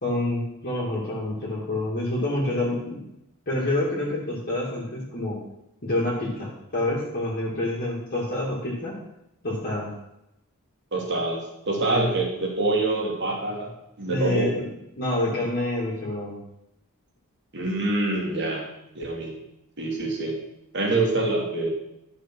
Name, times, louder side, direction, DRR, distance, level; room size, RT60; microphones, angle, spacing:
voice 1, 0.0-3.0 3.5-5.4 5.8-9.0 9.4-9.9 14.1-14.7 15.0-16.4, left 1 dB, 45° left, -6 dB, 2.3 m, -27 dB
voice 2, 10.9-13.7 14.0-14.5 17.5-18.7 18.9-19.3 19.8-20.3 20.7-21.7, right 2 dB, 55° right, -1 dB, 2.6 m, -25 dB
11.5 x 5.0 x 6.1 m, 0.85 s
head